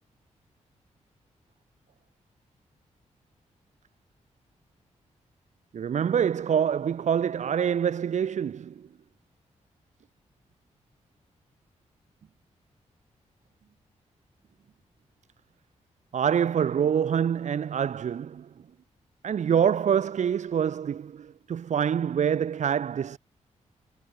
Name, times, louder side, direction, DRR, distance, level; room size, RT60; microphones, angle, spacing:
voice 1, 5.7-8.9 16.1-18.5 19.2-23.2, right 8 dB, 70° right, 1.6 m, -26 dB
cardioid pair, 85°, 13 cm